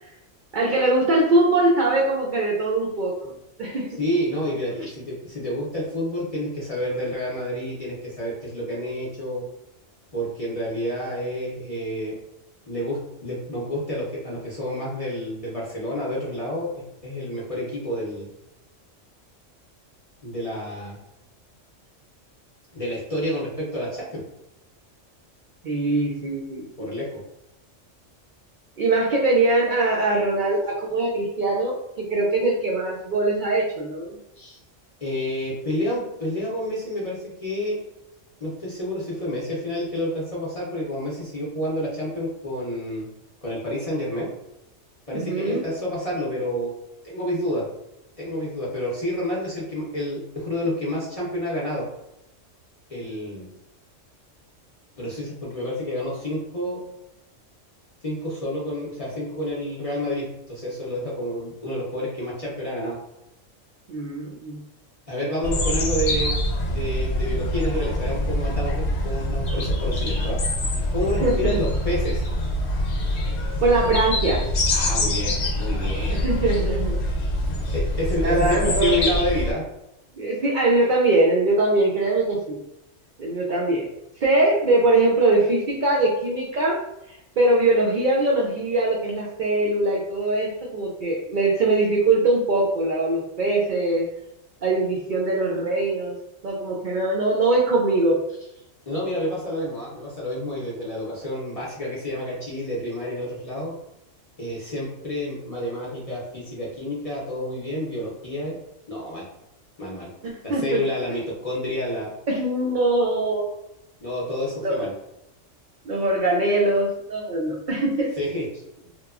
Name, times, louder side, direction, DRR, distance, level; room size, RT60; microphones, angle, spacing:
voice 1, 0.5-3.2 3.6-3.9 25.6-26.9 28.8-34.6 45.1-45.6 63.9-64.6 71.2-71.6 73.6-74.5 76.1-76.9 78.2-79.1 80.2-82.6 83.2-83.9 84.2-86.8 87.1-94.1 94.6-96.2 96.4-98.2 110.2-110.8 112.3-113.5 114.6-114.8 115.9-118.1, right 2 dB, 65° right, -3 dB, 0.4 m, -22 dB
voice 2, 4.0-9.5 10.1-12.2 12.7-18.3 20.2-21.0 22.7-24.2 26.8-27.2 35.0-37.8 38.4-43.1 43.4-44.3 45.1-46.7 47.0-47.7 48.2-51.9 52.9-53.5 55.0-56.9 58.0-63.0 65.1-66.3 66.7-70.4 70.9-72.2 74.7-76.2 77.7-79.6 98.9-103.7 104.4-108.6 108.9-109.3 109.8-110.1 110.4-112.1 114.0-114.9 118.2-118.5, equal, 40° left, -6 dB, 0.5 m, -29 dB
sound 1, 65.4-79.5, left 1 dB, 75° left, 1.0 m, -25 dB
2.9 x 2.2 x 2.3 m, 0.86 s
omnidirectional pair, 1.3 m